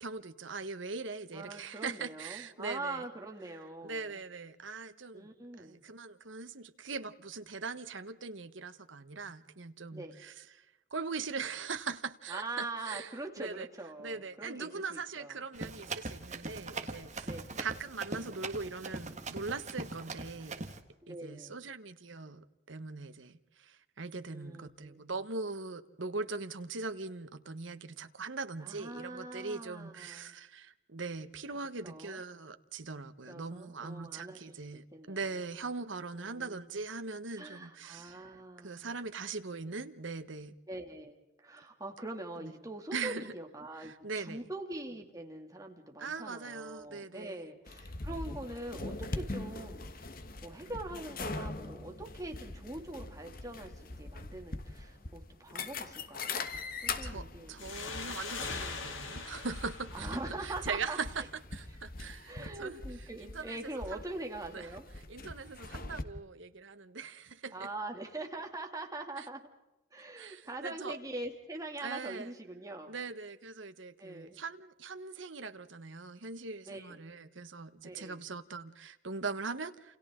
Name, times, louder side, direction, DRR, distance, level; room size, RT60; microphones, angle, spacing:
voice 1, 0.0-3.0 3.8-5.3 5.6-10.7 10.9-13.1 13.4-13.7 14.0-17.3 17.6-20.6 21.1-38.2 38.6-40.6 42.4-42.5 42.9-43.3 43.8-44.5 46.0-47.4 56.7-61.2 61.5-62.8 63.2-63.6 63.9-64.1 64.5-64.7 65.1-67.7 69.2-69.3 70.2-71.0 71.8-72.3 72.9-80.0, right 4 dB, 75° right, 10 dB, 1.3 m, -41 dB
voice 2, 1.3-4.2 5.1-5.8 9.9-10.2 12.3-15.4 17.2-17.5 21.0-21.6 24.3-25.0 28.6-30.3 31.8-32.2 33.3-35.3 36.1-36.6 37.4-39.0 40.7-41.1 41.4-50.0 50.4-56.4 56.8-58.2 59.9-61.0 62.3-64.9 67.5-69.4 69.9-72.9 74.0-74.4 76.7-77.0 77.8-78.2, right 2 dB, 15° right, 2 dB, 2.6 m, -43 dB
Run, 15.5-20.8, right 3 dB, 35° right, 1.7 m, -41 dB
sound 1, 47.7-66.0, left 3 dB, 45° left, 1.4 m, -42 dB
sound 2, 57.6-61.0, left 4 dB, 80° left, 3.1 m, -42 dB
29.5 x 29.0 x 3.8 m, 0.97 s
head